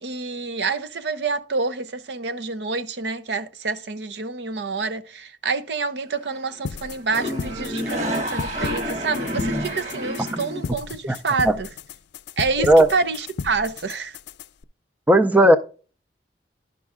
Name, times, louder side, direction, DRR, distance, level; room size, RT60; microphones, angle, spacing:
voice 1, 0.0-11.7 12.4-14.2, right 4 dB, 80° right, 0.7 m, -27 dB
sound 1, 6.1-6.5 6.8-10.7, equal, 40° right, 1.8 m, -29 dB
sound 2, 6.6-14.6, left 5 dB, 75° left, 0.4 m, -35 dB
voice 2, 15.1-15.6, right 1 dB, 10° right, 0.4 m, -14 dB
11.5 x 5.4 x 3.6 m
head